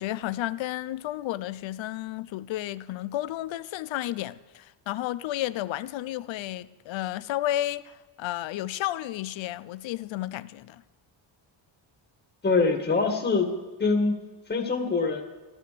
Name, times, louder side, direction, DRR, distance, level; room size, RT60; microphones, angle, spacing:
voice 1, 0.0-10.8, left 14 dB, 70° left, 0.7 m, -32 dB
voice 2, 12.4-13.5 13.8-14.1 14.5-15.2, left 4 dB, 20° left, 1.7 m, -24 dB
14.5 x 13.5 x 6.8 m
cardioid pair, 145°, 48 cm